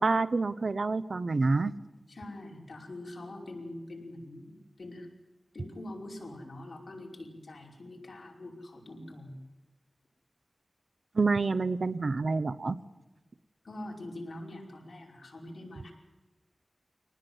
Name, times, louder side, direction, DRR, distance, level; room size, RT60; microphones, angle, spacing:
voice 1, 0.0-1.7 11.1-12.8, right 3 dB, 70° right, 13 dB, 0.8 m, -27 dB
voice 2, 2.1-5.1 5.5-9.5 13.6-15.9, left 1 dB, 75° left, -1 dB, 5.3 m, -44 dB
24.5 x 19.0 x 7.9 m, 1.1 s
wide cardioid pair, 80°, 0 cm